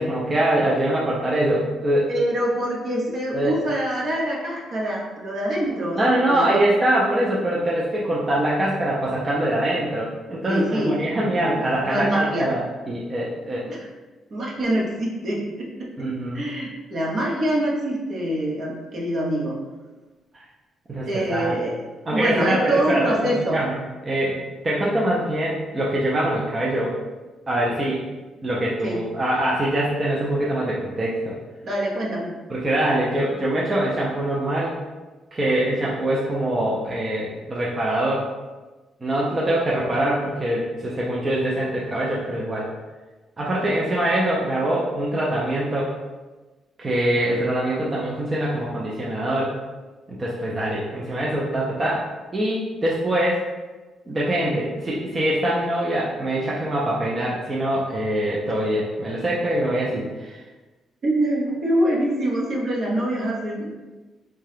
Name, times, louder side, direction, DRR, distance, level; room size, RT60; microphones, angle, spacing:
voice 1, 0.0-2.1 3.3-3.8 6.0-13.7 16.0-16.4 20.3-20.4 20.9-21.5 22.0-26.9 27.5-28.0 28.4-31.4 32.5-34.8 35.3-38.3 39.0-42.7 43.4-45.9 46.8-49.6 50.1-52.1 52.3-53.4 54.1-60.4, right 1 dB, 30° right, -5 dB, 0.5 m, -23 dB
voice 2, 2.1-6.6 10.4-11.0 11.3-12.5 13.7-13.8 14.3-16.1 16.3-19.6 21.1-21.8 22.1-23.6 28.8-29.1 31.6-32.3 61.0-63.7, right 1 dB, 55° right, -3 dB, 0.8 m, -25 dB
2.7 x 2.3 x 3.3 m, 1.2 s
cardioid pair, 90°, 0 cm